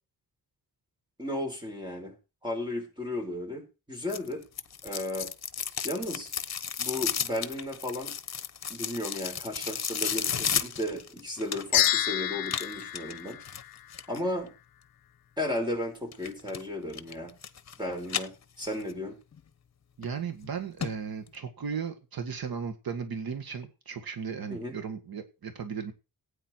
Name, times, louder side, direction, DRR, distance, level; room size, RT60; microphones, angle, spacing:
voice 1, 1.2-2.1 2.4-4.4 4.8-5.3 5.8-6.3 6.8-8.1 8.7-13.4 14.1-14.5 15.4-17.3 17.8-19.2 24.5-24.7, left 1 dB, 10° right, 5.1 m, -34 dB
sound 1, 4.1-11.9 12.5-14.2 16.1-16.6 16.9-17.8 18.0-18.9 19.3-19.4 20.0-20.1 20.4-20.5 20.8-20.9 21.3-21.4, left 7 dB, 45° left, 1.2 m, -33 dB
sound 2, 11.7-14.2, left 12 dB, 75° left, 0.6 m, -29 dB
voice 2, 20.0-25.9, right 6 dB, 75° right, 1.9 m, -36 dB
16.5 x 9.3 x 4.6 m
wide cardioid pair, 150°, 36 cm